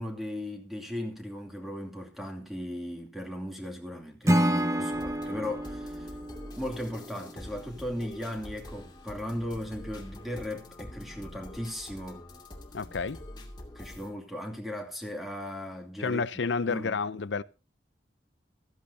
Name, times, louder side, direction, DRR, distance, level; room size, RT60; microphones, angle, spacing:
voice 1, 0.0-6.1 6.5-12.3 13.7-16.2 16.7-17.0, left 1 dB, ahead, 2.7 m, -37 dB
Acoustic guitar / Strum, 4.2-7.4, equal, 15° right, 1.0 m, -29 dB
sound 1, 4.9-14.1, left 1 dB, 25° left, 2.4 m, -46 dB
voice 2, 12.7-13.2 16.0-17.4, left 4 dB, 85° left, 0.6 m, -30 dB
15.5 x 14.0 x 2.8 m
head